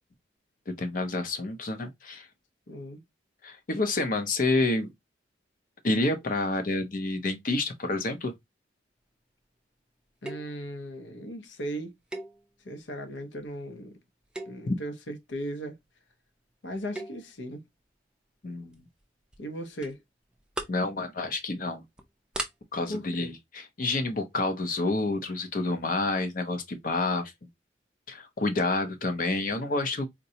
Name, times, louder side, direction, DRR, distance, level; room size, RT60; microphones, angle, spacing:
voice 1, 0.7-2.3 3.4-4.9 5.8-8.3 14.7-14.8 18.4-18.9 20.7-21.8 22.7-27.3 28.1-30.1, left 2 dB, 50° left, 0.6 m, -29 dB
voice 2, 2.7-3.0 10.2-11.9 12.6-14.0 14.5-15.8 16.6-17.6 19.4-20.0 22.9-23.3, equal, 80° left, 0.8 m, -37 dB
sound 1, 10.2-10.6 12.1-12.8 13.4-13.6 14.2-14.8 16.7-17.3 18.7-19.0 19.3-19.4 19.8-19.9 20.3-20.9 21.3-21.5 22.0-22.1 22.3-22.5, right 2 dB, 5° right, 0.4 m, -38 dB
3.8 x 2.2 x 2.7 m
head